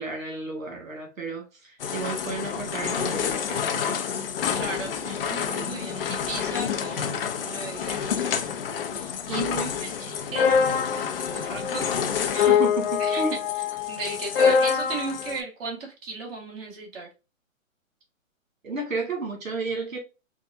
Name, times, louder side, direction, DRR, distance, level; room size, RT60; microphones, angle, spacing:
voice 1, 0.0-3.8 9.3-9.7 12.5-13.4 18.6-20.0, right 3 dB, 80° right, 1.9 m, -32 dB
sound 1, 1.8-15.4, left 7 dB, 45° left, 0.6 m, -26 dB
voice 2, 4.5-8.5 8.9-9.9 10.3-10.6 10.9-12.6 13.0-13.4 13.9-17.1, right 3 dB, 45° right, 1.8 m, -36 dB
4.5 x 2.4 x 2.5 m
hypercardioid pair, 140°, 40 cm